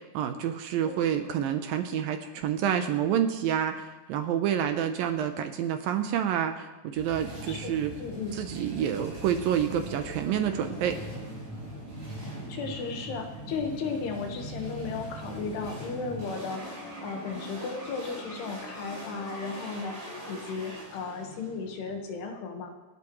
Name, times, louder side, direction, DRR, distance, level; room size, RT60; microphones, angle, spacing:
voice 1, 0.1-7.9 8.4-11.0, right 9 dB, 75° right, 7 dB, 2.3 m, -28 dB
sound 1, 6.9-22.2, right 1 dB, 20° right, 6.8 m, -41 dB
voice 2, 7.5-8.4 12.5-16.6 17.0-22.7, left 4 dB, 75° left, 3 dB, 3.5 m, -35 dB
28.0 x 12.0 x 3.1 m, 1.2 s
omnidirectional pair, 4.8 m